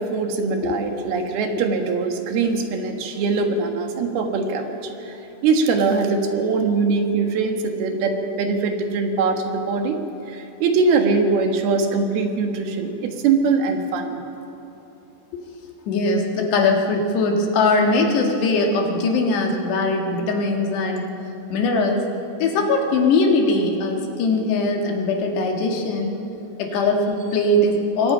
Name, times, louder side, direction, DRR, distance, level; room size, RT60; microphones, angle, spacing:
voice 1, 0.0-5.2 5.4-10.0 10.3-14.2, right 4 dB, 70° right, 4 dB, 3.3 m, -22 dB
voice 2, 15.9-21.1 21.5-22.1 22.4-26.2 26.6-28.1, left 2 dB, 80° left, 2 dB, 4.2 m, -20 dB
27.0 x 22.5 x 5.6 m, 3.0 s
omnidirectional pair, 4.8 m